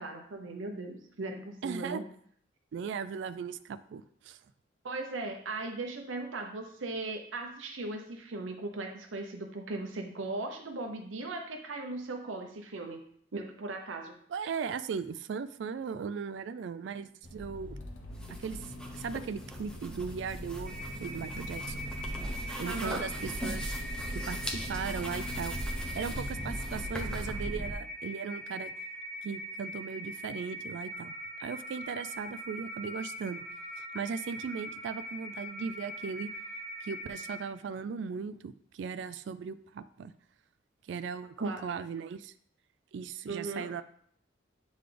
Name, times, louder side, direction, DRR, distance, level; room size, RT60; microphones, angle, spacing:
voice 1, 0.0-2.1 4.8-13.0 13.3-14.1 22.6-23.0 41.4-41.6 43.3-43.7, right 2 dB, 85° right, 3 dB, 0.7 m, -38 dB
voice 2, 1.6-2.0 2.7-4.4 14.3-17.8 18.4-18.7 18.9-21.8 22.6-23.7 24.1-25.6 25.9-28.7 29.2-31.1 31.4-33.4 33.8-36.3 36.8-40.1 40.9-42.3 42.9-43.8, right 6 dB, 70° right, 12 dB, 0.3 m, -38 dB
Accelerating revving vroom, 17.2-27.7, equal, 75° left, 0.8 m, -39 dB
sound 1, 18.1-27.3, equal, 5° left, 0.6 m, -43 dB
sound 2, 20.7-37.4, right 1 dB, 40° right, 0.8 m, -42 dB
8.2 x 3.9 x 3.3 m, 0.63 s
head